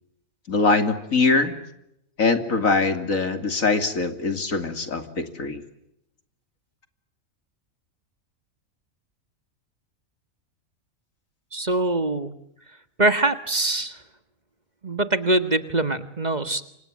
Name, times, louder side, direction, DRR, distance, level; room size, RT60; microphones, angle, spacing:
voice 1, 0.5-1.6 2.2-5.6, left 3 dB, 80° left, 9 dB, 3.2 m, -22 dB
voice 2, 11.5-12.3 13.0-14.0 14.8-16.7, right 2 dB, 30° right, 11 dB, 1.8 m, -23 dB
30.0 x 26.5 x 7.6 m, 0.80 s
omnidirectional pair, 1.4 m